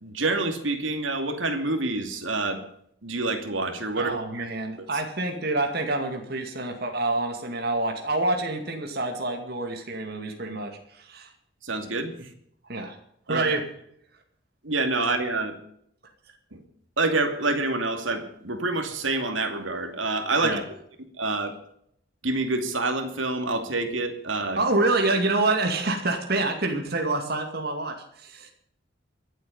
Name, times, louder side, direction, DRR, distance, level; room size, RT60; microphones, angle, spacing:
voice 1, 0.0-2.6 3.0-4.5 4.8-4.9 11.6-12.3 13.3-13.4 14.6-15.6 16.5-16.6 17.0-20.6 21.2-21.5 22.2-24.6, right 2 dB, 85° right, 6 dB, 2.6 m, -27 dB
voice 2, 4.0-11.3 12.7-13.0 13.3-13.7 20.4-20.6 24.6-28.5, right 2 dB, 55° right, 3 dB, 2.3 m, -27 dB
24.0 x 8.3 x 5.6 m, 0.69 s
head